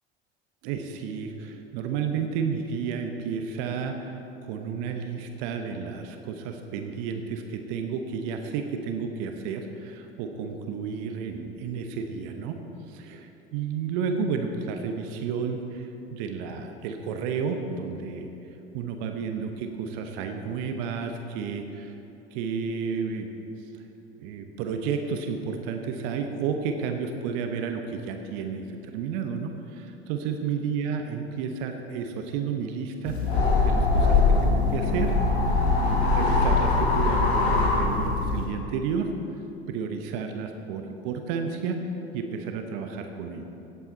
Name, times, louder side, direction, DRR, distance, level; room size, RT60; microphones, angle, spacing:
voice 1, 0.6-12.6 13.1-13.2 13.5-18.3 18.7-21.9 22.3-23.3 24.2-35.5 35.8-39.1 39.7-41.8 42.1-43.4, right 6 dB, 55° right, 5 dB, 1.1 m, -32 dB
sound 1, 33.0-38.4, left 3 dB, 75° left, 1.9 m, -22 dB
16.5 x 8.3 x 4.1 m, 3.0 s
figure-of-eight pair, 70°, 32 cm